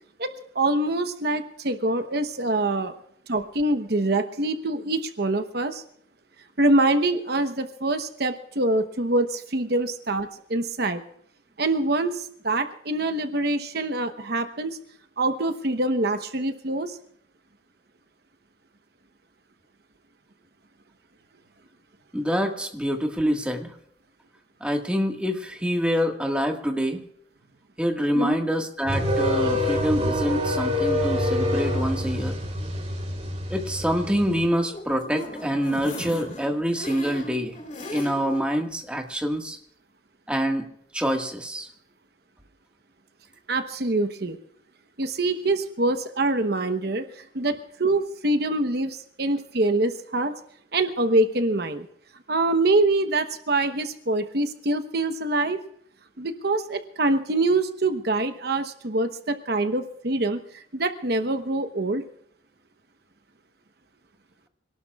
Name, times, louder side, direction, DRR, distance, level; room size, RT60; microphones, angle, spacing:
voice 1, 0.2-2.9 3.3-5.8 6.6-11.0 11.6-14.8 15.2-17.0 28.1-28.4 43.5-44.4 45.0-50.3 50.7-51.9 52.3-55.6 56.2-62.0, right 2 dB, 55° right, 7 dB, 1.0 m, -25 dB
voice 2, 22.1-23.7 24.6-27.0 27.8-32.4 33.5-37.6 37.9-39.6 40.3-41.7, equal, 5° right, 2 dB, 1.7 m, -26 dB
sound 1, 28.9-34.5, left 1 dB, 35° right, 3.5 m, -26 dB
sound 2, 34.5-38.5 38.9-39.0 39.3-39.4, left 1 dB, 40° left, 3.5 m, -37 dB
26.5 x 18.5 x 2.4 m, 0.69 s
head